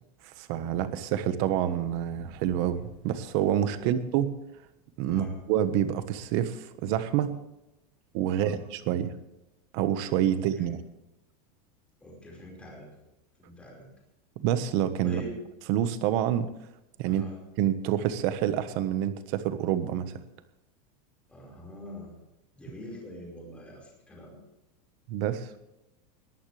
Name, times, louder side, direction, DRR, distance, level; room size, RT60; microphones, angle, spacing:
voice 1, 0.4-4.3 5.0-7.4 8.1-9.1 9.7-10.8 14.4-15.2 15.7-16.5 17.0-17.2 17.6-20.2 25.1-25.5, right 10 dB, 40° right, 11 dB, 1.3 m, -27 dB
voice 2, 5.1-5.4 8.3-8.6 10.3-10.7 12.0-12.9 13.4-13.9 15.0-15.4 17.1-17.4 21.3-22.2 22.6-24.4, left 1 dB, 5° left, -2 dB, 5.0 m, -44 dB
21.0 x 15.0 x 3.4 m, 0.92 s
supercardioid pair, 180°, 20 cm